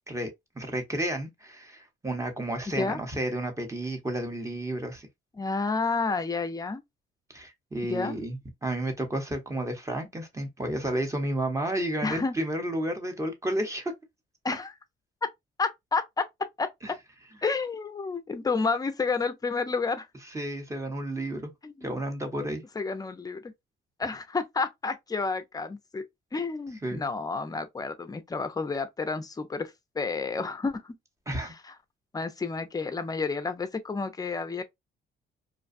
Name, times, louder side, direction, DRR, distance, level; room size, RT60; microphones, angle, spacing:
voice 1, 0.5-5.1 7.3-13.9 16.8-16.9 20.3-21.5 21.8-22.6 26.8-27.0 31.3-31.5, right 1 dB, 15° right, 0.8 m, -31 dB
voice 2, 5.3-6.8 7.8-8.2 12.0-12.4 14.4-14.7 15.6-16.3 16.6-17.0 17.4-20.1 21.6-21.9 22.8-23.5 24.0-26.1 26.3-31.0 32.1-34.6, left 4 dB, 20° left, 0.5 m, -30 dB
2.5 x 2.2 x 2.5 m
cardioid pair, 90°, 20 cm